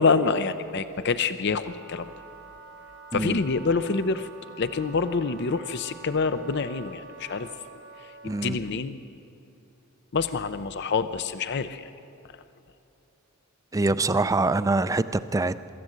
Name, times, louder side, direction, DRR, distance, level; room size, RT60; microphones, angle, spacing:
voice 1, 0.0-2.1 3.1-4.3 4.6-7.5 8.4-9.0 10.1-11.9, left 4 dB, 50° left, 12 dB, 0.5 m, -26 dB
Wind instrument woodwind instrument, 1.5-8.6, right 4 dB, 60° right, 1.3 m, -47 dB
voice 2, 8.2-8.6 13.7-15.7, right 2 dB, 15° right, 13 dB, 0.4 m, -24 dB
24.0 x 14.0 x 7.9 m, 2.8 s
head